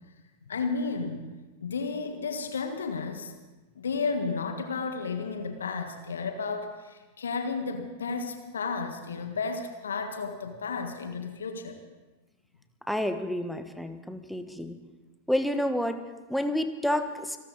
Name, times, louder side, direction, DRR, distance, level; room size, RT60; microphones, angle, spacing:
voice 1, 0.5-1.3 1.6-3.3 3.7-11.8, left 4 dB, 75° left, 6 dB, 1.5 m, -32 dB
voice 2, 12.9-14.8 15.3-16.0 16.3-17.4, left 1 dB, ahead, 8 dB, 1.3 m, -29 dB
27.0 x 13.0 x 4.1 m, 1.2 s
figure-of-eight pair, 95°, 0 cm